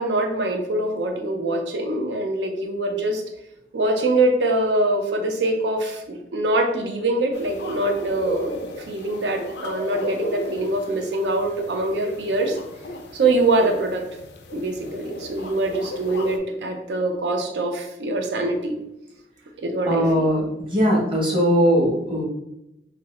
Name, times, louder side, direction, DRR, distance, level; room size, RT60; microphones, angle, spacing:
voice 1, 0.0-3.2 3.7-12.6 13.1-14.0 14.5-18.8 19.6-20.0, right 2 dB, 75° right, 3 dB, 0.5 m, -24 dB
sound 1, 7.3-16.4, left 2 dB, 70° left, 0.4 m, -35 dB
voice 2, 19.9-22.2, equal, 30° right, -3 dB, 1.0 m, -20 dB
2.6 x 2.5 x 3.1 m, 0.87 s
head